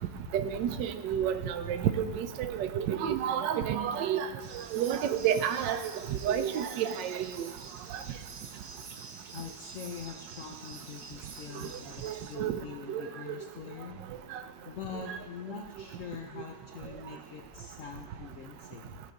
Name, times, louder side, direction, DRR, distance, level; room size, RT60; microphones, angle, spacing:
voice 1, 0.3-4.3 4.5-5.8 6.1-7.5 12.0-12.6 12.9-13.0 13.3-13.4 14.3-14.4 15.1-15.2, right 9 dB, 80° right, 10 dB, 1.2 m, -30 dB
sound 1, 4.4-12.4, right 4 dB, 55° right, 0.9 m, -48 dB
voice 2, 9.3-14.0 14.6-19.0, left 6 dB, 70° left, 2 dB, 0.7 m, -44 dB
14.5 x 5.0 x 3.9 m, 1.4 s
omnidirectional pair, 1.9 m